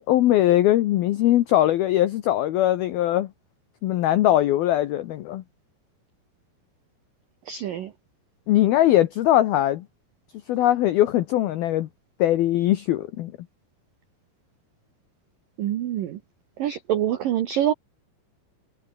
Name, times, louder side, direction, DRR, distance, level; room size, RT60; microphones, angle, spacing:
voice 1, 0.0-3.3 3.8-5.4 8.5-9.8 10.5-11.9 12.2-13.3, left 13 dB, 85° left, 2.1 m, -21 dB
voice 2, 7.5-7.9 15.6-16.2 16.6-17.7, right 11 dB, 80° right, 2.0 m, -25 dB
omnidirectional pair, 6.0 m